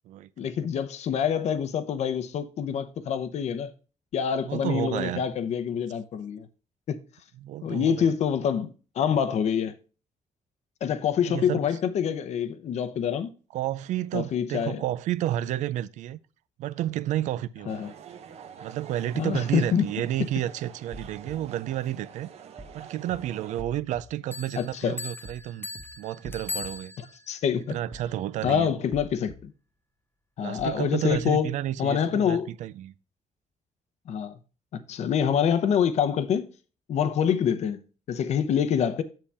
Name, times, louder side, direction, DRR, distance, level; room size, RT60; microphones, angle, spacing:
voice 1, 0.4-3.7 4.1-6.5 6.9-7.0 7.6-9.7 10.8-13.3 14.1-14.8 17.7-17.9 19.1-19.9 24.6-25.0 27.0-27.8 28.4-29.5 30.4-31.5 31.8-32.5 34.1-34.4 34.7-36.5 36.9-37.8 38.1-39.0, left 8 dB, 65° left, 0.9 m, -26 dB
voice 2, 4.4-5.2 7.4-8.1 11.3-11.7 13.5-16.2 16.6-17.8 18.6-22.3 22.7-25.7 26.0-26.9 27.7-28.7 30.4-32.9, right 13 dB, 90° right, 0.5 m, -31 dB
sound 1, 17.7-23.6, right 8 dB, 60° right, 0.9 m, -46 dB
sound 2, 20.9-21.3 22.6-22.8 23.1-23.2 23.6-24.0 25.2-25.4 25.7-25.8 26.2-26.7 27.9-28.1 28.4-28.5 28.9-29.3 30.6-30.8 31.1-31.2, right 1 dB, 15° right, 1.3 m, -44 dB
Bell, 24.3-27.4, left 3 dB, 15° left, 0.6 m, -39 dB
7.6 x 6.9 x 3.4 m
cardioid pair, 125°, 12 cm